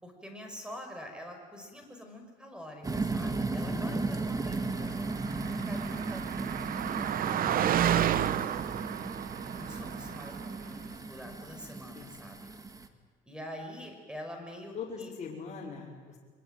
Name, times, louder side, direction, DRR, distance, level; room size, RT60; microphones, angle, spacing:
voice 1, 0.0-5.0 5.7-8.4 9.5-12.4 13.3-15.1, equal, 5° right, 4 dB, 5.7 m, -46 dB
sound 1, 2.8-12.9, right 3 dB, 20° right, 2.0 m, -36 dB
voice 2, 3.7-4.1 11.9-12.2 14.7-16.2, left 6 dB, 40° left, -4 dB, 5.1 m, -41 dB
Car passing by, 4.7-10.7, right 10 dB, 60° right, 1.0 m, -31 dB
24.0 x 23.5 x 9.2 m, 1.5 s
cardioid pair, 110°, 17 cm